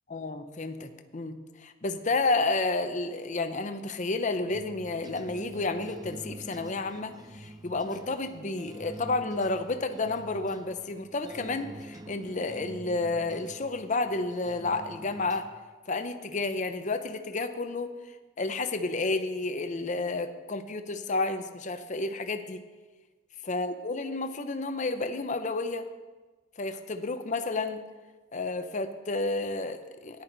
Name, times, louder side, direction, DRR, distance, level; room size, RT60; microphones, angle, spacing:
voice 1, 0.1-15.5 15.9-22.6 23.5-25.9 26.6-27.8 28.3-30.2, left 3 dB, 35° left, 8 dB, 0.6 m, -31 dB
sound 1, 4.5-15.5, right 1 dB, 20° right, 0.5 m, -46 dB
14.0 x 10.5 x 3.9 m, 1.3 s
head